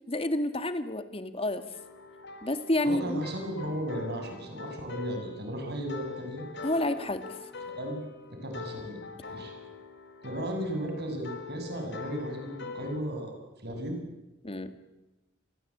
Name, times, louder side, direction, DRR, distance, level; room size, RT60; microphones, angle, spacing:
voice 1, 0.1-1.6 2.4-3.3 6.6-7.2 14.4-14.7, left 1 dB, 30° left, 10 dB, 2.1 m, -29 dB
sound 1, 1.7-13.0, left 5 dB, 60° left, 4.3 m, -44 dB
voice 2, 2.8-6.4 7.8-8.0 8.3-9.0 9.3-9.5 10.2-13.4 13.6-14.0, equal, 55° right, 4 dB, 7.6 m, -35 dB
29.0 x 23.0 x 8.7 m, 1.0 s
head